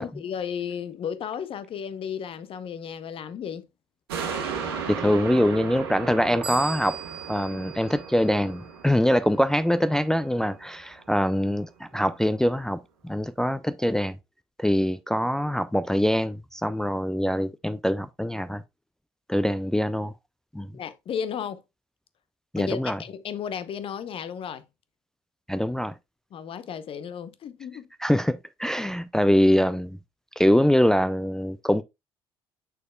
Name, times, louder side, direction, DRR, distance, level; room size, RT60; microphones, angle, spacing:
voice 1, 0.0-3.7 20.7-21.6 22.6-24.6 26.3-27.9, left 8 dB, 45° left, 0.7 m, -34 dB
sound 1, 4.1-10.7 11.2-11.3, right 6 dB, 75° right, 1.3 m, -36 dB
voice 2, 4.9-7.0 7.3-14.2 14.6-18.6 19.3-20.1 20.5-20.7 22.5-23.0 25.5-25.9 28.0-30.0 30.4-31.8, equal, 5° left, 0.4 m, -24 dB
sound 2, 6.4-8.9, right 6 dB, 40° right, 1.7 m, -39 dB
6.6 x 6.3 x 2.3 m
figure-of-eight pair, 55°, 13 cm